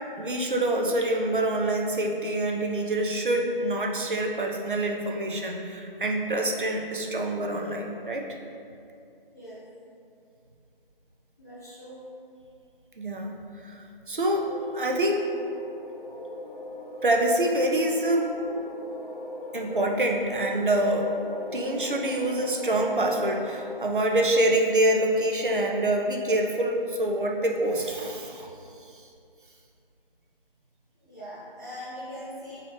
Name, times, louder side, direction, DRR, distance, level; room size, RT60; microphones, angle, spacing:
voice 1, 0.2-8.3 13.0-13.4 13.6-13.8 14.1-15.3 17.0-18.3 19.5-21.1 21.5-28.5, right 1 dB, 60° right, 1 dB, 0.5 m, -26 dB
voice 2, 11.4-12.0 31.0-32.6, equal, 20° left, -15 dB, 1.0 m, -41 dB
sound 1, 14.4-23.8, left 2 dB, 60° left, 0.4 m, -39 dB
3.8 x 2.8 x 3.1 m, 2.5 s
figure-of-eight pair, 165°, 29 cm